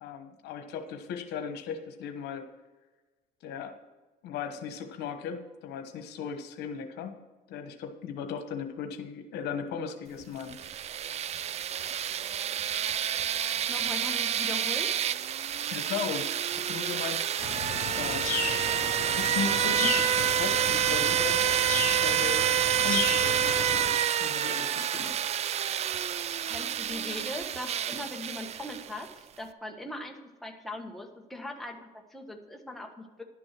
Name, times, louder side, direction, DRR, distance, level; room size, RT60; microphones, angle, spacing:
voice 1, 0.0-2.4 3.4-3.7 4.2-7.2 7.5-10.6 15.7-17.5 17.9-18.6 18.9-21.4 22.0-22.4 22.8-23.9 24.2-25.1, left 6 dB, 80° left, 6 dB, 1.2 m, -37 dB
sound 1, 10.4-29.1, right 10 dB, 40° right, 0.4 m, -28 dB
voice 2, 13.7-14.9 25.0-25.1 26.5-33.2, left 2 dB, ahead, 1 dB, 1.5 m, -40 dB
sound 2, 17.4-23.9, left 6 dB, 55° left, 2.1 m, -35 dB
sound 3, 18.7-20.2, left 1 dB, 20° left, 2.6 m, -53 dB
11.5 x 6.3 x 5.9 m, 1.2 s
cardioid pair, 110°, 17 cm